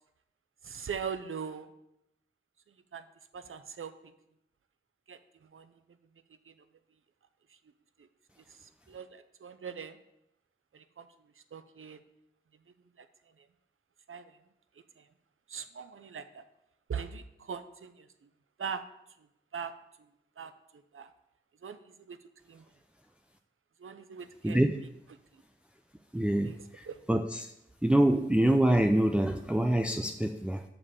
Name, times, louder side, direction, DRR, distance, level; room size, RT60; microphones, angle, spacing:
voice 1, 0.6-1.7 2.9-3.1 3.3-4.1 5.1-5.8 6.4-6.5 7.5-7.6 8.0-8.1 8.5-10.0 10.7-11.1 11.4-12.0 13.0-13.1 13.4-13.5 14.1-14.4 15.0-15.1 15.5-16.4 16.9-18.3 18.6-18.9 19.5-19.7 20.4-21.1 21.6-22.2 22.5-22.7 23.8-24.6 25.3-25.4 26.4-27.0, right 6 dB, 85° right, 11 dB, 0.7 m, -41 dB
voice 2, 24.4-24.8 26.1-27.5 27.8-30.6, right 1 dB, 5° right, 5 dB, 0.5 m, -26 dB
6.9 x 5.4 x 6.9 m, 0.84 s
cardioid pair, 50°, 21 cm